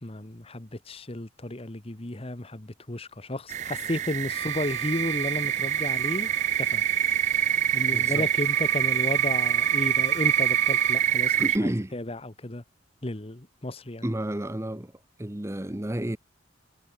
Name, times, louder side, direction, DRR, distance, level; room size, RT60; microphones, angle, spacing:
voice 1, 0.0-6.8 7.7-12.6 13.0-14.1, left 1 dB, 30° left, 1.2 m, -33 dB
sound 1, 3.5-11.6, right 10 dB, 35° right, 0.3 m, -25 dB
Bowed string instrument, 4.3-11.1, right 8 dB, 65° right, 2.4 m, -39 dB
voice 2, 7.9-8.3 11.3-11.9 14.0-14.9 15.2-16.2, right 1 dB, 15° right, 0.8 m, -30 dB
head